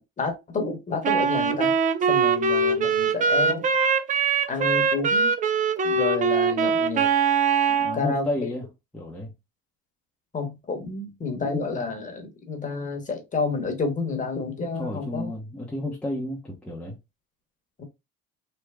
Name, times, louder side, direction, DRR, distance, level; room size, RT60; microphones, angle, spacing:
voice 1, 0.0-1.8 2.1-3.7 4.5-5.3 5.8-7.1 7.9-8.5 10.3-15.3 17.8-17.9, left 4 dB, 25° left, 1.0 m, -30 dB
Wind instrument woodwind instrument, 1.0-8.0, right 5 dB, 25° right, 0.4 m, -22 dB
voice 2, 7.7-8.7 8.9-9.3 14.8-16.9, left 1 dB, 5° left, 0.7 m, -31 dB
3.3 x 2.1 x 3.4 m
cardioid pair, 110°, 29 cm